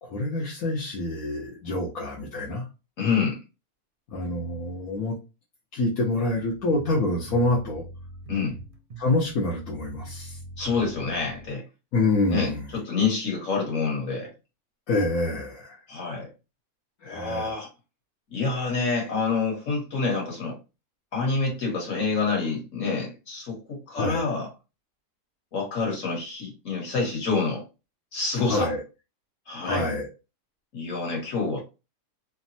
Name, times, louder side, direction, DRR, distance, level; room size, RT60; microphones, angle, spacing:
voice 1, 0.0-2.7 4.1-5.1 5.7-7.8 9.0-10.4 11.9-12.6 14.9-15.8 17.0-17.5 23.9-24.2 28.5-28.8 29.6-30.1, left 2 dB, 80° left, -4 dB, 1.2 m, -26 dB
voice 2, 3.0-3.4 8.3-8.6 10.6-11.6 12.3-14.3 15.9-16.3 17.0-17.7 18.3-20.6 21.1-24.5 25.5-27.6 28.1-28.7 29.5-29.9 30.7-31.6, left 4 dB, 65° left, -1 dB, 1.6 m, -27 dB
sound 1, 6.2-11.6, right 1 dB, 55° right, 0.6 m, -42 dB
3.3 x 2.0 x 2.6 m, 0.29 s
omnidirectional pair, 1.5 m